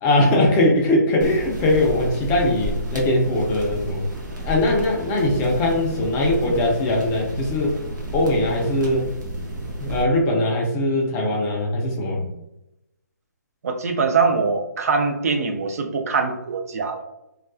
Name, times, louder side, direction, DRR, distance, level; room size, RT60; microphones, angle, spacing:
voice 1, 0.0-4.0 4.4-7.8 8.1-9.1 9.8-12.3, left 1 dB, 20° left, -1 dB, 0.4 m, -20 dB
sound 1, 1.2-10.0, equal, 90° right, 0.9 m, -32 dB
voice 2, 13.6-17.0, right 4 dB, 55° right, 4 dB, 0.4 m, -23 dB
2.3 x 2.2 x 2.4 m, 0.90 s
figure-of-eight pair, 145°, 10 cm